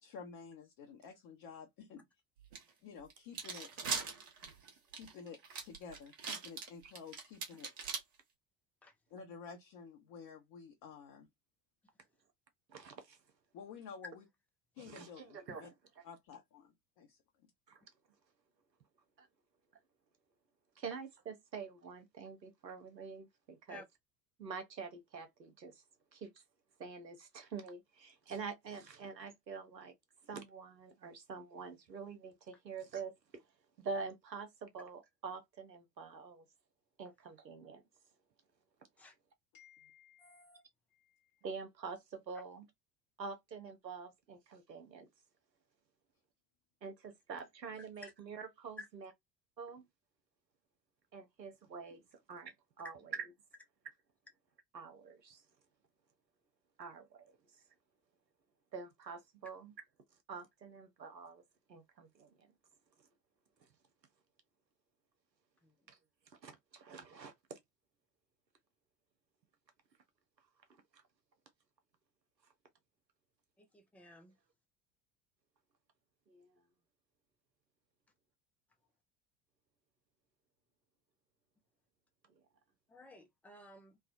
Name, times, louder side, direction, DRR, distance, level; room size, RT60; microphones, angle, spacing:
voice 1, 0.0-2.0 2.8-3.8 4.9-7.7 9.1-11.3 13.5-14.2 14.7-15.7 16.0-17.5 39.5-40.4 40.9-41.4, left 6 dB, 45° left, 0.7 m, -52 dB
sound 1, 2.5-2.6 3.1-8.0, right 5 dB, 60° right, 1.2 m, -40 dB
voice 2, 12.7-13.2 14.8-16.0 17.7-17.8 19.2-19.3 20.8-23.8 24.4-25.8 26.1-26.4 26.8-29.9 30.2-33.4 33.8-36.5 37.0-37.8 41.4-42.7 43.2-45.1 46.8-49.1 49.6-49.9 51.1-52.0 52.3-53.0 54.7-55.4 56.8-57.6 58.7-59.7 60.3-61.4 61.7-62.5 63.0-63.1 63.6-63.7 65.9-66.0 66.3-67.6 70.9-71.0 76.3-76.6, right 5 dB, 90° right, 0.7 m, -47 dB
voice 3, 40.2-40.6 48.0-48.1 48.8-48.9 65.6-65.7 73.6-74.4 82.9-84.0, left 2 dB, 5° left, 0.3 m, -54 dB
3.2 x 2.1 x 2.4 m
figure-of-eight pair, 65°, 49 cm